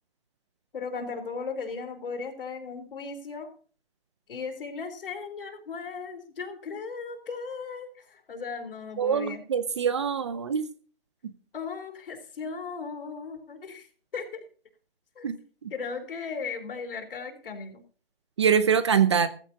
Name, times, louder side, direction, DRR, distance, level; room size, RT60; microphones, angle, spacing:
voice 1, 0.7-3.5 4.3-9.4 11.5-13.9 14.1-14.4 15.2-15.3 15.7-17.8, left 5 dB, 60° left, 5 dB, 3.7 m, -36 dB
voice 2, 9.0-10.6 15.2-15.4 15.6-15.7 18.4-19.3, right 7 dB, 25° right, 14 dB, 0.6 m, -24 dB
16.0 x 14.5 x 2.9 m, 0.40 s
hypercardioid pair, 160°, 31 cm